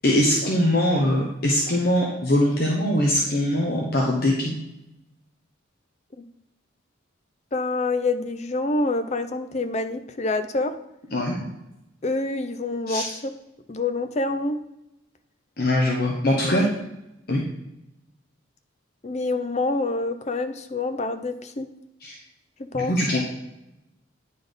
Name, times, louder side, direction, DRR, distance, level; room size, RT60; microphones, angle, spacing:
voice 1, 0.0-4.5 11.1-11.3 12.9-13.1 15.6-16.7 17.3-17.4 22.0-22.2 22.7-23.2, left 1 dB, 50° left, -1 dB, 1.0 m, -22 dB
voice 2, 7.5-10.8 12.0-13.3 13.7-14.6 16.5-16.7 19.0-21.7 22.7-22.9, left 2 dB, 35° left, 8 dB, 0.5 m, -26 dB
9.5 x 4.1 x 5.1 m, 0.90 s
head